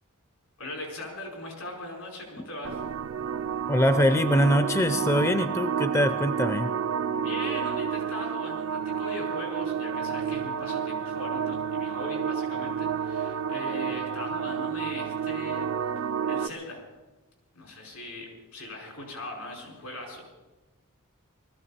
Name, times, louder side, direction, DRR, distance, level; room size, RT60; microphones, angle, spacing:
voice 1, 0.6-2.9 7.1-15.7 16.3-16.8 17.5-20.2, left 1 dB, 85° left, -1 dB, 5.6 m, -39 dB
sound 1, 2.6-16.5, right 7 dB, 65° right, 0.4 m, -30 dB
voice 2, 3.7-6.7, equal, 15° left, 10 dB, 0.4 m, -23 dB
19.5 x 14.5 x 4.4 m, 1.1 s
head